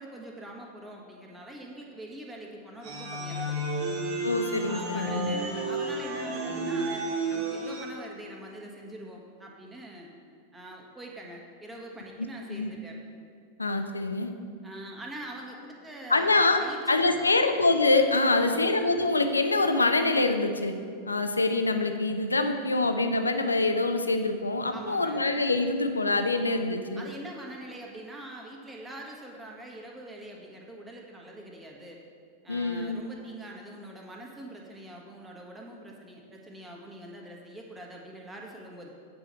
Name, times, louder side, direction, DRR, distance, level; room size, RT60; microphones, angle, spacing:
voice 1, 0.0-3.8 4.7-10.1 10.5-13.0 14.6-17.4 18.2-18.7 24.7-25.2 26.9-32.0 32.4-38.9, right 1 dB, 10° right, -1 dB, 1.7 m, -44 dB
sound 1, 2.8-7.8, right 2 dB, 45° right, 1.9 m, -31 dB
voice 2, 4.2-5.3 12.5-12.7 13.6-14.3 16.1-16.6 16.9-20.7 21.1-27.0 32.5-33.0, left 2 dB, 80° left, 7 dB, 0.6 m, -25 dB
8.8 x 5.0 x 7.1 m, 2.3 s
figure-of-eight pair, 90°, 0 cm